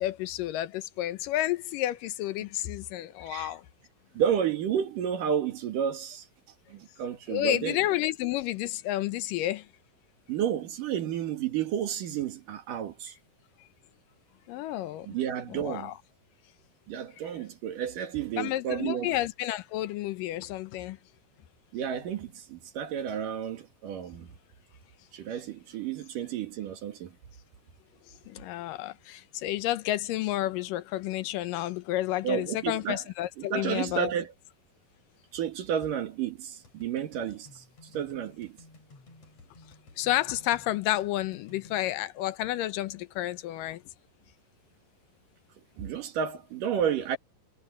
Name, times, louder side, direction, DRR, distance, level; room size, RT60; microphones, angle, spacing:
voice 1, 0.0-3.6 7.3-9.7 14.5-15.1 15.5-15.9 18.4-21.0 28.3-34.1 40.0-43.8, left 14 dB, 75° left, 2.4 m, -30 dB
voice 2, 4.1-6.3 6.7-7.8 10.3-13.2 15.0-15.9 16.9-19.1 21.7-24.4 25.1-27.1 32.2-33.0 33.4-34.3 35.3-38.6 45.8-47.2, right 9 dB, 70° right, 3.3 m, -31 dB
sound 1, 36.6-41.8, left 2 dB, 45° left, 7.0 m, -55 dB
omnidirectional pair, 4.1 m